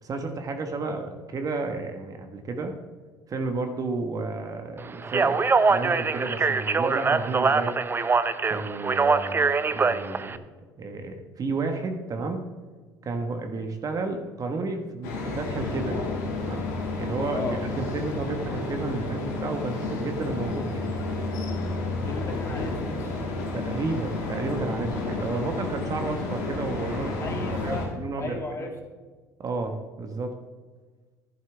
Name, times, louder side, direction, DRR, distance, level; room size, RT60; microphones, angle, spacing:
voice 1, 0.0-2.7 3.3-5.4 5.7-7.8 8.5-10.4 10.8-12.5 13.0-16.0 16.4-16.6 17.0-20.9 23.5-27.2 27.5-28.7 29.4-30.3, right 3 dB, 40° right, 5 dB, 1.4 m, -32 dB
Speech, 5.0-10.4, right 4 dB, 25° right, 0.6 m, -23 dB
sound 1, 15.0-27.9, left 3 dB, 90° left, 2.4 m, -31 dB
voice 2, 22.1-23.2 25.2-25.4 27.2-27.9 28.2-28.7, left 3 dB, 30° left, 1 dB, 2.4 m, -36 dB
11.0 x 11.0 x 3.5 m, 1.4 s
hypercardioid pair, 70°, 9 cm